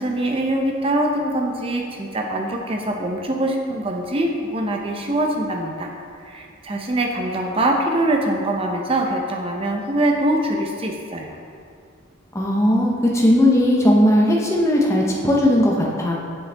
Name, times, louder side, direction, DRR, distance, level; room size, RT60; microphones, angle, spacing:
voice 1, 0.0-5.9 6.3-11.4, right 1 dB, 25° right, 2 dB, 0.6 m, -23 dB
voice 2, 12.3-16.1, left 1 dB, 15° left, -3 dB, 0.8 m, -17 dB
7.0 x 6.7 x 3.4 m, 2.3 s
head